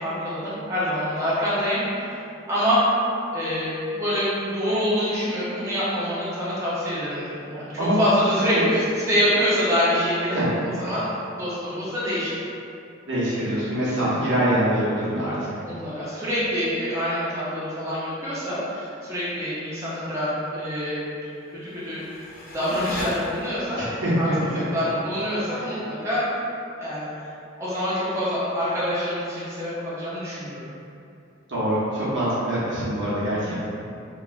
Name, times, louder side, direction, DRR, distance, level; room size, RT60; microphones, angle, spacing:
voice 1, 0.0-2.2 2.5-2.8 3.3-10.4 10.8-11.1 11.3-12.4 15.6-21.0 21.5-22.0 22.5-23.8 24.2-26.3 26.8-27.1 27.6-30.7 33.3-33.6, equal, 15° right, -10 dB, 0.5 m, -26 dB
voice 2, 13.1-15.6 23.8-24.6 25.5-25.7 31.5-33.6, right 1 dB, 70° right, -9 dB, 0.9 m, -24 dB
sound 1, 21.5-23.9, left 1 dB, 45° left, 0.4 m, -37 dB
3.0 x 2.3 x 2.3 m, 2.6 s
head